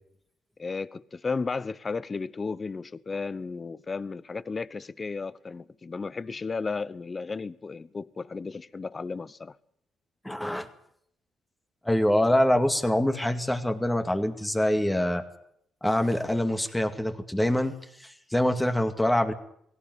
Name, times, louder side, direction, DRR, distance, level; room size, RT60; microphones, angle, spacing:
voice 1, 0.6-9.6, left 4 dB, 30° left, 1.0 m, -34 dB
voice 2, 10.2-10.7 11.8-15.2 15.8-17.7 18.0-19.3, left 1 dB, 5° left, 2.3 m, -25 dB
20.0 x 17.5 x 9.7 m
cardioid pair, 90°, 0 cm